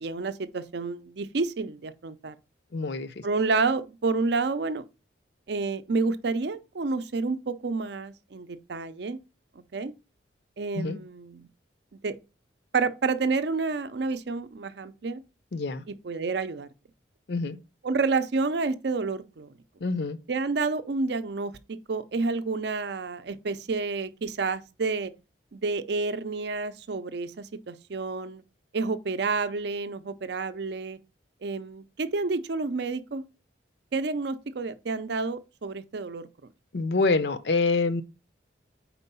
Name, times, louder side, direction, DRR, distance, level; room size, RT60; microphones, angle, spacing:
voice 1, 0.0-2.4 3.2-4.8 5.5-9.2 9.7-9.9 10.6-11.5 12.0-12.2 12.7-15.2 15.9-16.7 17.8-19.5 20.3-25.1 25.5-28.4 28.7-31.0 31.4-33.2 33.9-36.3, right 4 dB, 60° right, 0.5 m, -29 dB
voice 2, 2.7-3.2 10.7-11.0 15.5-15.8 17.3-17.6 19.8-20.2 36.7-38.0, left 3 dB, 60° left, 0.5 m, -26 dB
4.5 x 4.4 x 5.4 m
head